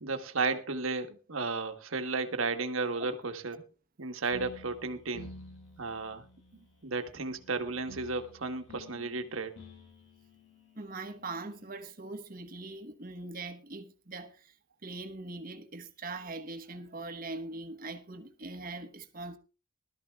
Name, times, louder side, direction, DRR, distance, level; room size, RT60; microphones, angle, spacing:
voice 1, 0.0-3.6 4.0-5.3 5.8-6.2 6.8-9.5, right 4 dB, 80° right, 1.3 m, -33 dB
sound 1, 4.3-11.8, left 1 dB, 65° left, 7.2 m, -52 dB
voice 2, 10.8-14.5 14.8-19.4, right 3 dB, 40° right, 1.1 m, -41 dB
20.0 x 13.0 x 2.3 m
head